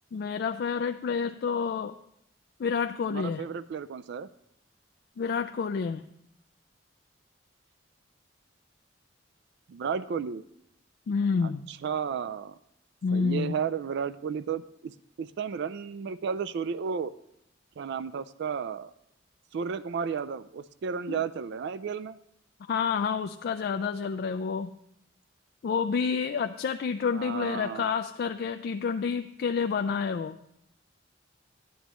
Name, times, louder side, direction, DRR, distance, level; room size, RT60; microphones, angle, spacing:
voice 1, 0.1-1.9 2.6-3.4 5.2-6.1 11.1-11.7 13.0-13.5 21.1-21.2 22.7-24.7 25.6-30.4, left 5 dB, 55° left, 8 dB, 0.3 m, -29 dB
voice 2, 3.1-4.3 9.7-10.4 11.4-12.6 13.1-17.1 17.8-18.9 19.5-22.2 27.1-27.9, right 6 dB, 60° right, 14 dB, 0.3 m, -33 dB
12.5 x 10.0 x 3.0 m, 0.76 s
head